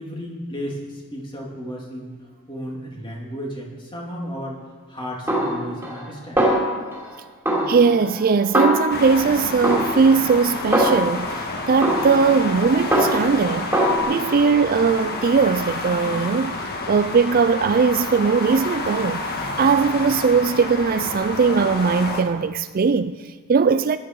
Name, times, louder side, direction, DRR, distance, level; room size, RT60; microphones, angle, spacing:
voice 1, 0.0-4.6 4.9-6.4, equal, 20° left, 2.8 m, -34 dB
Snare drum, 5.3-6.1 6.4-7.1 7.5-9.2 9.6-11.3 11.8-13.4 13.7-14.0, equal, 10° right, 3.5 m, -22 dB
voice 2, 7.7-13.7 14.1-16.6 16.9-19.2 19.6-24.0, right 5 dB, 40° right, 0.4 m, -19 dB
sound 1, 8.9-22.2, left 2 dB, 45° left, 1.6 m, -29 dB
18.5 x 12.0 x 4.7 m
head